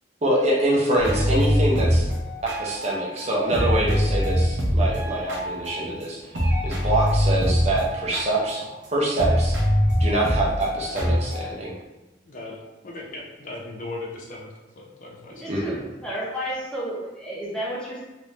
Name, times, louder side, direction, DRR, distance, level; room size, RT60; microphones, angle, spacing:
voice 1, 0.2-2.1 2.4-6.2 6.6-8.6 8.9-9.6 10.0-11.7 15.5-15.6, right 1 dB, 35° right, -4 dB, 0.6 m, -24 dB
sound 1, 1.0-3.2 3.5-6.0 6.3-11.5, equal, 85° right, 0.8 m, -23 dB
voice 2, 12.3-15.5 15.7-15.9, left 2 dB, 45° left, -1 dB, 0.5 m, -38 dB
voice 3, 15.4-18.0, equal, 5° left, -7 dB, 0.8 m, -31 dB
3.1 x 2.6 x 3.2 m, 1.1 s
head